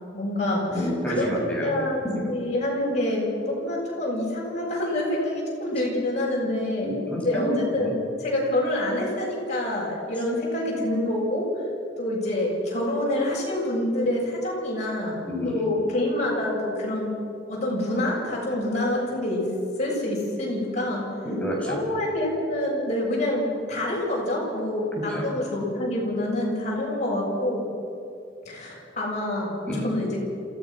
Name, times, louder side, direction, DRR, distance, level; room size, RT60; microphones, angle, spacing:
voice 1, 0.1-1.3 1.6-6.9 7.2-7.9 8.2-11.5 12.0-17.1 17.5-19.5 19.8-21.0 21.6-27.6 28.5-30.2, left 1 dB, 40° left, -5 dB, 7.4 m, -27 dB
voice 2, 0.7-1.7 6.8-7.9 15.2-15.8 21.2-21.8 25.1-25.2 29.7-29.8, left 1 dB, 5° left, -4 dB, 6.6 m, -28 dB
28.0 x 16.5 x 6.2 m, 2.5 s
head